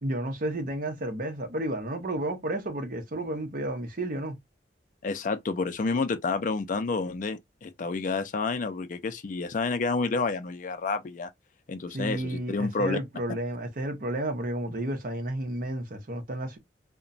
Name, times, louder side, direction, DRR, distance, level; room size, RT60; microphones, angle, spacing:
voice 1, 0.0-4.4 11.9-16.6, right 1 dB, 50° right, 0.7 m, -32 dB
voice 2, 5.0-11.3 11.7-13.0, left 4 dB, 45° left, 0.4 m, -29 dB
2.9 x 2.2 x 2.5 m
head